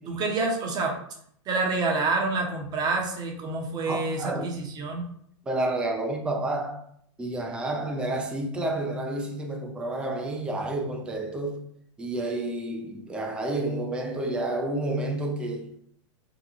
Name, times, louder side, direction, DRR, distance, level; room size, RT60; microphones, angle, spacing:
voice 1, 0.1-0.9 1.5-5.1, right 3 dB, 25° right, 0.8 m, -27 dB
voice 2, 3.9-4.5 5.5-6.8 7.2-11.6 12.0-15.7, right 2 dB, 5° right, 0.4 m, -30 dB
2.9 x 2.2 x 4.0 m
hypercardioid pair, 125°, 16 cm